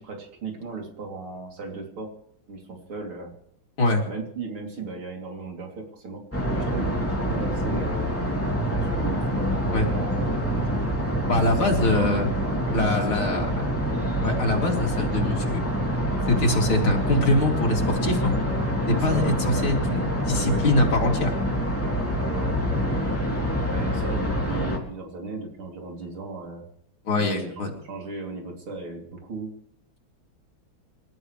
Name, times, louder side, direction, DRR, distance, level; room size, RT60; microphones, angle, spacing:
voice 1, 0.0-2.1 2.5-3.3 4.1-6.2 6.5-10.8 11.2-13.7 18.9-19.7 20.3-20.7 21.8-22.9 23.7-26.7 27.1-29.5, right 3 dB, 85° right, 1 dB, 4.0 m, -37 dB
sound 1, 6.3-24.8, equal, 5° left, 2.8 m, -26 dB
voice 2, 11.3-12.3 12.7-13.5 14.2-15.6 16.3-18.3 19.0-21.3 27.1-27.7, left 2 dB, 75° left, 0 dB, 3.8 m, -23 dB
27.5 x 13.0 x 3.3 m, 0.70 s
omnidirectional pair, 2.3 m